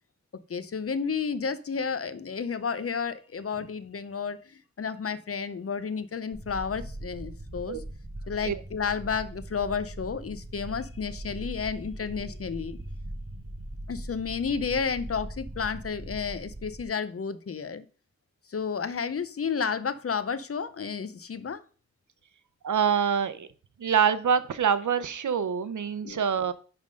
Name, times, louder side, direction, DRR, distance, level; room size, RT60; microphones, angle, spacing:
voice 1, 0.5-7.8 8.3-12.8 13.9-17.9 18.5-21.6 26.0-26.3, left 6 dB, 50° left, 0.6 m, -31 dB
sound 1, 6.3-16.8, right 1 dB, 30° right, 1.2 m, -40 dB
voice 2, 22.6-23.5 23.8-26.5, right 7 dB, 90° right, 0.7 m, -25 dB
10.5 x 3.6 x 5.1 m
wide cardioid pair, 100°, 29 cm